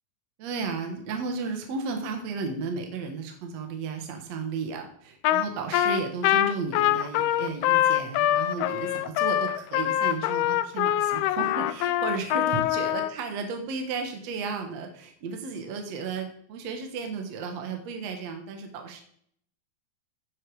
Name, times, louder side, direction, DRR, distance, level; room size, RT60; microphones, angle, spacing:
voice 1, 0.4-19.0, right 4 dB, 55° right, 4 dB, 2.3 m, -34 dB
Trumpet, 5.2-5.5 5.7-13.1, left 13 dB, 85° left, 2.5 m, -24 dB
17.0 x 7.2 x 4.9 m, 0.65 s
omnidirectional pair, 4.5 m